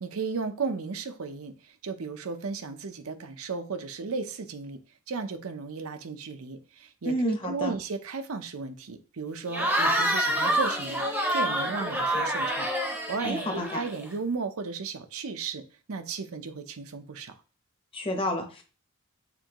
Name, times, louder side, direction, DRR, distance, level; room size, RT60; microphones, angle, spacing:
voice 1, 0.0-1.5 1.8-4.8 5.1-15.6 15.9-17.3, right 4 dB, 80° right, 0.6 m, -35 dB
voice 2, 7.0-7.7 13.2-13.8 17.9-18.6, equal, 25° left, 0.8 m, -29 dB
Cheering / Crowd, 9.5-14.1, right 1 dB, 10° right, 0.7 m, -27 dB
6.9 x 2.6 x 3.0 m
head